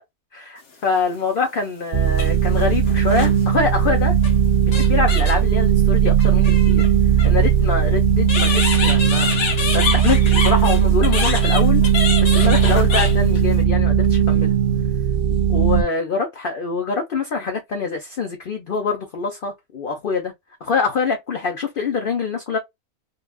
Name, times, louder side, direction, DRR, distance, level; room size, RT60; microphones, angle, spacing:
voice 1, 0.3-4.1 4.7-6.8 7.2-9.4 9.7-11.8 12.2-14.5 15.5-20.3 20.6-22.6, left 4 dB, 50° left, 0.7 m, -24 dB
sound 1, 0.9-1.0 2.1-3.4 4.2-4.4 4.7-5.5 6.2-7.3 8.3-13.6, left 5 dB, 75° left, 1.6 m, -26 dB
sound 2, 1.9-15.8, right 8 dB, 55° right, 0.5 m, -17 dB
3.9 x 2.4 x 2.3 m
omnidirectional pair, 1.5 m